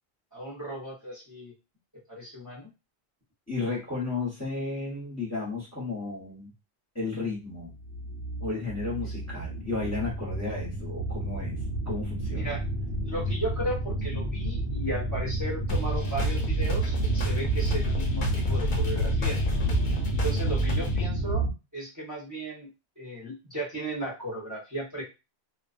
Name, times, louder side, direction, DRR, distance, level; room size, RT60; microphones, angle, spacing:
voice 1, 0.3-1.5 2.1-2.7 9.0-9.1 12.3-12.6 13.0-19.4 20.1-21.4 21.7-22.7 23.0-25.0, right 1 dB, 20° right, -5 dB, 0.9 m, -35 dB
voice 2, 3.5-6.5 6.9-7.7 8.4-12.6, left 3 dB, 15° left, -5 dB, 0.9 m, -33 dB
sound 1, 7.6-21.5, right 1 dB, 85° right, 1.0 m, -30 dB
sound 2, 15.7-21.1, right 1 dB, 55° left, 0.8 m, -30 dB
2.4 x 2.2 x 2.4 m, 0.26 s
omnidirectional pair, 1.1 m